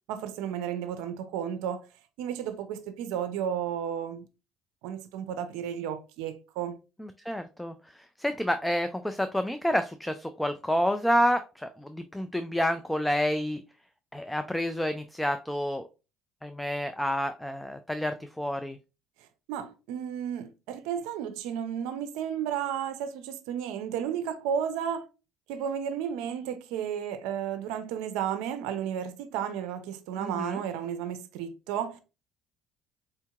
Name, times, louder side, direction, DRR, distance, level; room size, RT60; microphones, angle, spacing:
voice 1, 0.1-1.8 2.2-4.3 4.8-6.8 19.5-25.0 25.5-32.0, right 9 dB, 85° right, 0.5 m, -33 dB
voice 2, 7.0-13.6 14.1-15.8 16.4-18.8 30.2-30.6, equal, 5° left, 0.3 m, -29 dB
4.4 x 2.8 x 2.3 m
supercardioid pair, 90°, 0 cm